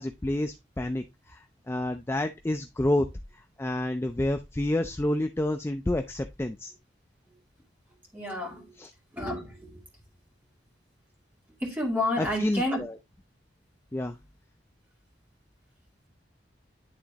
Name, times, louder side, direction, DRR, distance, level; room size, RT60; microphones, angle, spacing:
voice 1, 0.0-3.1 3.3-6.7 8.8-8.9 12.2-12.9 13.9-14.2, left 1 dB, 15° left, 0.4 m, -29 dB
voice 2, 8.1-8.7 9.1-9.8 11.6-12.8, left 1 dB, 10° right, 2.5 m, -30 dB
10.5 x 3.7 x 2.9 m
head